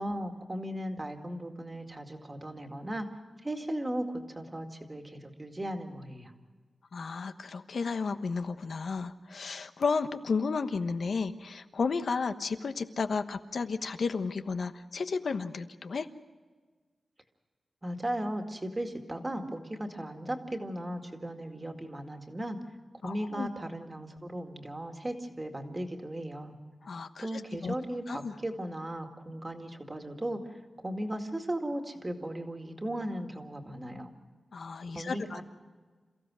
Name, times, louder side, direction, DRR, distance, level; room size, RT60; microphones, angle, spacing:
voice 1, 0.0-3.1 3.4-6.3 17.8-22.6 23.0-26.5 27.2-30.4 30.8-34.1 34.9-35.4, right 1 dB, 20° right, 4 dB, 2.1 m, -36 dB
voice 2, 6.9-16.1 23.0-23.5 26.8-27.3 27.6-27.7 28.1-28.3 34.5-35.4, left 4 dB, 60° left, 9 dB, 1.1 m, -33 dB
28.5 x 16.0 x 6.2 m, 1.4 s
wide cardioid pair, 180°, 0 cm